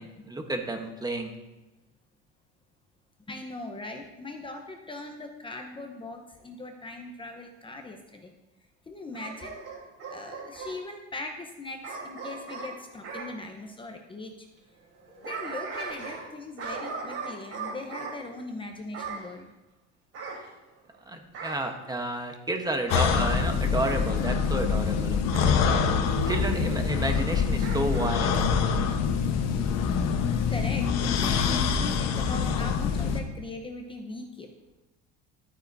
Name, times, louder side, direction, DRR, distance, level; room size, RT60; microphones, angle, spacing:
voice 1, 0.0-1.3 21.1-25.8 26.3-28.4, right 2 dB, 15° right, 5 dB, 1.0 m, -31 dB
voice 2, 3.3-8.3 8.9-9.6 10.1-14.5 15.2-19.5 30.5-34.5, left 2 dB, 15° left, 3 dB, 0.8 m, -40 dB
Bark / Growling, 9.1-10.8 11.8-13.3 14.9-16.3 16.6-18.2 18.9-19.3 20.1-20.9 21.3-21.7 22.8-23.1 23.8-24.1 25.3-25.6 26.2-26.5 27.6-28.1 28.5-28.6, right 4 dB, 55° right, 3.5 m, -38 dB
sound 1, 22.9-33.2, left 6 dB, 60° left, 1.1 m, -25 dB
12.5 x 9.0 x 2.7 m, 1.1 s
cardioid pair, 125°, 29 cm